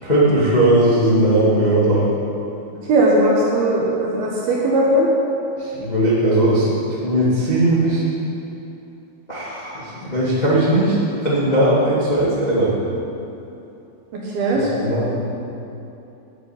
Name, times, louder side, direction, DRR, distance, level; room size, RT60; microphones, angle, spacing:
voice 1, 0.0-2.1 4.6-4.7 5.6-8.0 9.3-12.8 14.5-15.2, right 1 dB, 90° left, -7 dB, 0.4 m, -18 dB
voice 2, 2.9-5.1 14.1-14.6, right 1 dB, 65° right, -4 dB, 2.9 m, -18 dB
10.0 x 8.6 x 8.9 m, 2.9 s
omnidirectional pair, 5.4 m